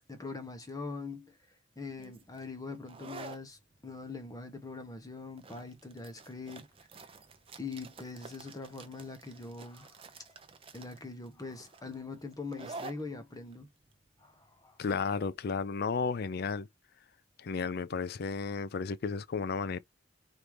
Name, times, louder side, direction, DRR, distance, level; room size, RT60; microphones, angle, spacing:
voice 1, 0.1-1.4 1.8-6.7 7.6-10.0 10.7-13.7 14.2-14.8, left 4 dB, 20° left, 0.9 m, -42 dB
sound 1, 2.0-15.4, right 4 dB, 30° right, 0.6 m, -50 dB
voice 2, 14.8-16.7 17.4-19.8, left 5 dB, 55° left, 0.4 m, -33 dB
3.5 x 2.7 x 4.7 m
head